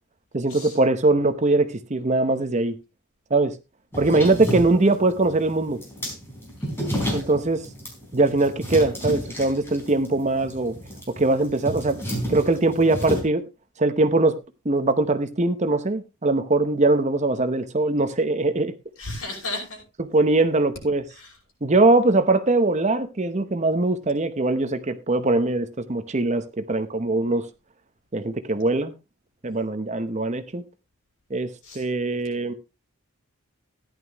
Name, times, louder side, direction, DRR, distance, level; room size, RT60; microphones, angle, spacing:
voice 1, 0.3-2.7 3.3-3.5 4.0-5.8 7.1-7.6 8.1-10.8 11.1-12.0 12.3-13.4 13.8-14.4 14.6-18.7 20.0-21.0 21.6-27.5 28.1-28.9 29.4-30.6 31.3-32.5, right 2 dB, 30° right, 0.8 m, -21 dB
sound 1, 3.9-13.2, equal, 10° left, 4.3 m, -31 dB
voice 2, 6.6-7.2 19.0-19.8 21.1-21.3 31.6-31.8, left 2 dB, 65° left, 5.8 m, -35 dB
14.5 x 11.0 x 3.0 m
head